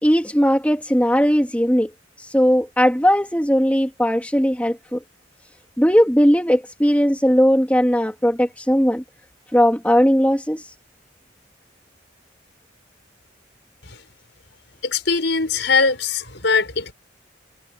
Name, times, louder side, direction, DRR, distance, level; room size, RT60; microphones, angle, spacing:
voice 1, 0.0-1.9 2.2-5.0 5.8-9.0 9.5-10.7, equal, 10° left, 3.0 m, -18 dB
voice 2, 14.8-16.9, left 4 dB, 70° left, 5.7 m, -21 dB
head